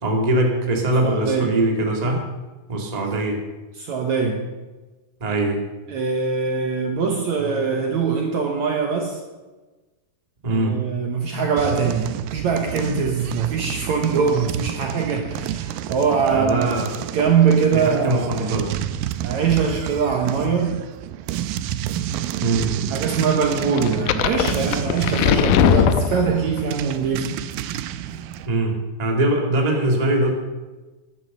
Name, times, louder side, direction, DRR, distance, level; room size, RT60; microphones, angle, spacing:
voice 1, 0.0-2.2 2.7-3.4 5.2-5.6 10.4-10.8 16.3-16.9 17.7-18.7 22.4-22.7 28.5-28.7 29.0-30.3, right 2 dB, 15° right, 1 dB, 1.7 m, -21 dB
voice 2, 1.0-1.6 3.8-4.5 5.9-9.2 10.4-16.8 17.1-18.5 19.2-20.8 22.9-27.3, right 5 dB, 60° right, 2 dB, 2.1 m, -22 dB
sound 1, 11.6-28.5, right 11 dB, 80° right, 2.3 m, -30 dB
sound 2, 23.8-26.6, left 10 dB, 80° left, 1.9 m, -20 dB
11.5 x 11.5 x 6.7 m, 1.2 s
omnidirectional pair, 4.2 m